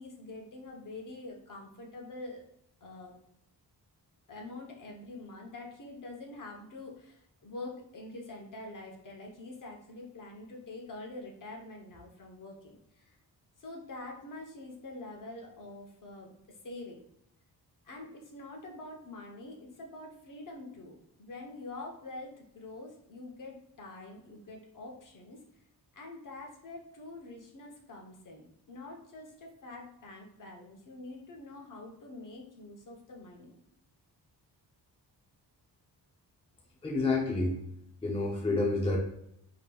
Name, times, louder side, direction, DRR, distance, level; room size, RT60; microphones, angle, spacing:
voice 1, 0.0-2.4 2.8-3.2 4.3-13.1 13.6-16.3 16.6-17.0 17.8-20.9 21.2-25.4 25.9-33.5, left 2 dB, 50° left, 0 dB, 0.9 m, -45 dB
voice 2, 36.8-37.6 38.0-39.0, left 3 dB, 15° left, -1 dB, 0.5 m, -28 dB
5.0 x 2.9 x 2.3 m, 0.78 s
wide cardioid pair, 155°, 41 cm